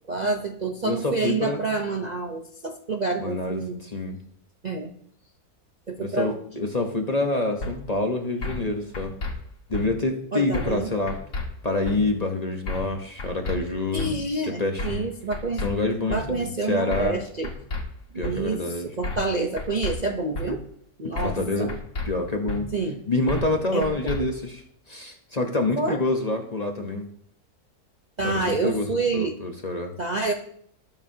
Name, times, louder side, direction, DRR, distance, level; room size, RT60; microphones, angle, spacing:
voice 1, 0.1-3.8 4.6-4.9 5.9-6.4 10.3-10.9 13.9-15.6 16.1-17.5 18.1-18.6 19.0-20.6 21.0-21.8 22.7-23.0 23.7-24.3 25.8-26.0 28.2-29.4 30.0-30.3, right 3 dB, 35° right, 1 dB, 0.7 m, -28 dB
voice 2, 0.8-1.6 3.2-4.2 6.0-9.1 9.7-11.2 11.6-14.2 14.5-15.0 15.6-17.2 18.1-18.9 21.2-21.7 22.0-22.7 23.1-24.6 24.9-27.1 28.2-29.9, left 2 dB, 30° left, 3 dB, 1.0 m, -27 dB
sound 1, 7.6-7.7 8.4-8.7 8.9-9.3 9.7-9.9 10.5-10.8 11.1-11.5 11.9-12.0 12.7-12.9 13.2-13.6 14.0-14.1 14.8-15.0 15.3-15.7 16.1-16.2 16.9-17.2 17.4-17.8 18.2-18.3 19.0-19.3 19.6-19.9 20.3-20.5 21.2-21.4 21.7-22.1 22.5-22.6 23.3-23.5 23.8-24.2, left 2 dB, 60° left, 2.2 m, -31 dB
20.0 x 7.2 x 2.8 m, 0.66 s
omnidirectional pair, 1.6 m